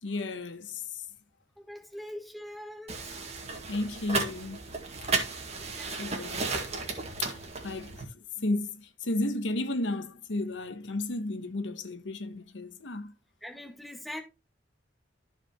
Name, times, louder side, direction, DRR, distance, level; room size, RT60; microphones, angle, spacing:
voice 1, 0.0-1.0 3.7-4.6 5.0-5.3 6.0-6.4 7.2-13.1, left 2 dB, 80° left, 1.1 m, -33 dB
voice 2, 1.6-3.1 5.5-6.0 13.4-14.2, left 1 dB, ahead, 1.9 m, -42 dB
sound 1, 2.9-8.0, right 3 dB, 35° right, 1.9 m, -34 dB
14.0 x 5.0 x 3.1 m
head